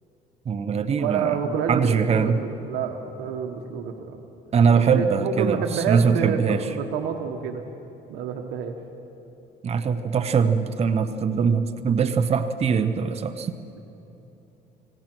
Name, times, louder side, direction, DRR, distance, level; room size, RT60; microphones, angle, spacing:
voice 1, 0.5-1.4 1.7-2.4 4.5-6.6 9.6-13.5, right 6 dB, 40° right, 10 dB, 0.9 m, -22 dB
voice 2, 1.0-4.2 4.9-7.6 8.1-8.7, right 6 dB, 85° right, 4 dB, 1.4 m, -28 dB
26.5 x 17.5 x 6.2 m, 2.9 s
cardioid pair, 110°, 17 cm